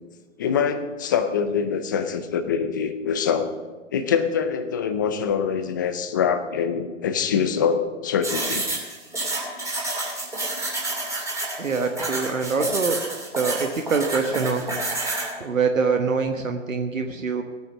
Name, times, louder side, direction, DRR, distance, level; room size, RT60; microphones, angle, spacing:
voice 1, 0.4-3.5 3.9-8.7, left 7 dB, 15° left, 9 dB, 0.5 m, -24 dB
sound 1, 8.2-15.3, right 2 dB, 10° right, 2.7 m, -29 dB
voice 2, 11.6-13.0 13.4-14.8 15.4-17.4, right 5 dB, 80° right, 5 dB, 1.4 m, -24 dB
17.5 x 9.3 x 6.1 m, 1.3 s
hypercardioid pair, 140°, 39 cm